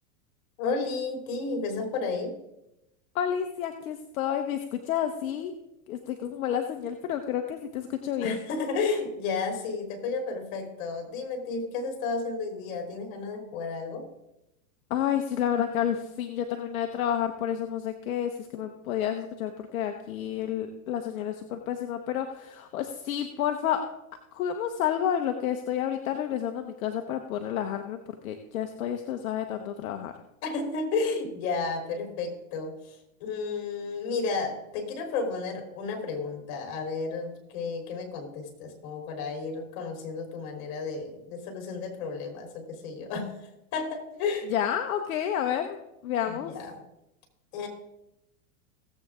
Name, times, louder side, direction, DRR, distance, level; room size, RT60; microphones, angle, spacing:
voice 1, 0.6-2.3 8.2-14.1 30.4-43.4 43.7-44.5 46.3-46.8 47.5-47.7, left 4 dB, 55° left, 3 dB, 3.6 m, -32 dB
voice 2, 3.1-5.5 5.9-8.4 14.9-23.8 24.3-30.1 44.5-45.8 46.0-46.5, left 9 dB, 75° left, 6 dB, 1.1 m, -30 dB
17.5 x 7.9 x 3.7 m, 0.90 s
hypercardioid pair, 115°, 42 cm